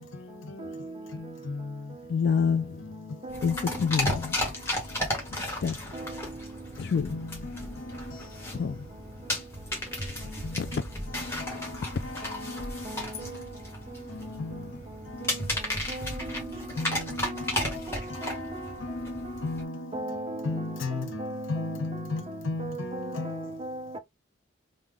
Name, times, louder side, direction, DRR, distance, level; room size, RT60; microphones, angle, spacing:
voice 1, 1.2-1.7 7.1-7.6 10.4-10.6 11.4-11.5 14.3-14.6 16.8-17.4 18.8-19.9 20.4-23.5, left 3 dB, 75° left, 0.7 m, -34 dB
voice 2, 2.1-3.1 3.4-4.4 5.3-5.8 6.8-7.1 8.5-8.8 10.6-10.7, left 6 dB, 55° left, 0.3 m, -27 dB
sound 1, 3.3-19.6, left 1 dB, 15° left, 1.1 m, -35 dB
voice 3, 19.9-20.4 21.2-21.4 22.6-22.8 23.2-23.3 23.6-24.0, right 2 dB, 25° right, 0.5 m, -35 dB
3.4 x 2.1 x 3.4 m
head